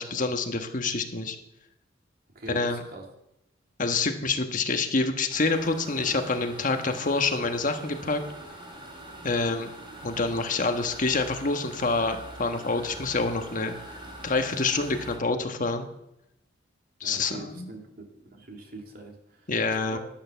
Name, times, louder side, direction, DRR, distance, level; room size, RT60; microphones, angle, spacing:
voice 1, 0.0-1.4 2.5-2.8 3.8-8.2 9.2-9.7 10.0-13.7 14.2-15.9 17.0-17.7 19.5-20.0, left 3 dB, 45° left, 6 dB, 1.3 m, -27 dB
voice 2, 2.3-3.1 17.0-19.5 19.8-20.0, right 2 dB, 55° right, 2 dB, 2.4 m, -43 dB
sound 1, 5.3-15.2, right 1 dB, 25° right, 3.1 m, -43 dB
11.5 x 11.5 x 6.9 m, 0.84 s
head